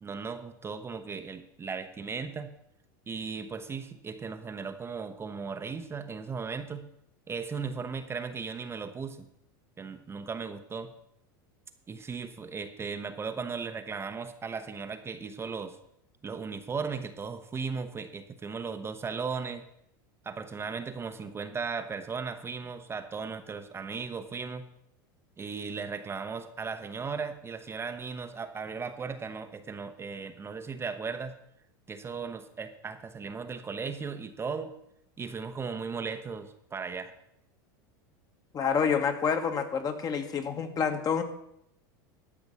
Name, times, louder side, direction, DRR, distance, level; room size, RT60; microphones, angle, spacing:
voice 1, 0.0-2.5 3.1-6.9 7.3-9.3 9.8-10.9 11.9-15.8 16.2-19.7 20.2-24.7 25.4-31.4 31.9-34.7 35.2-37.1, right 5 dB, 20° right, 7 dB, 0.8 m, -37 dB
voice 2, 38.5-41.2, left 6 dB, 35° left, 7 dB, 1.5 m, -28 dB
12.0 x 6.0 x 6.8 m, 0.77 s
hypercardioid pair, 105°, 11 cm